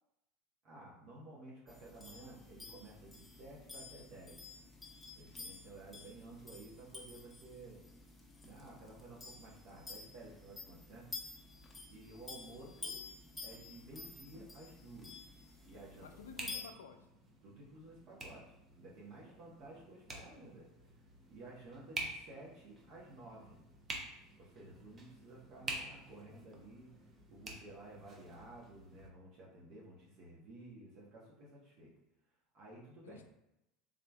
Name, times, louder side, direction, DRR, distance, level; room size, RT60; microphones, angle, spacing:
voice 1, 0.6-4.4 5.1-7.8 8.4-11.1 11.9-13.0 13.4-15.2 15.6-16.1 16.5-16.6 17.4-20.7 21.3-23.6 24.4-26.9 27.3-31.9 32.5-33.2, right 2 dB, 55° right, -5 dB, 1.1 m, -54 dB
sound 1, 1.7-16.6, left 4 dB, 10° left, 0.9 m, -51 dB
voice 2, 12.6-13.0 16.0-17.0 33.0-33.3, left 6 dB, 90° left, 7 dB, 0.4 m, -53 dB
sound 2, 13.9-29.1, right 2 dB, 30° right, 0.8 m, -49 dB
3.7 x 3.4 x 2.3 m, 0.89 s
hypercardioid pair, 90°, 0 cm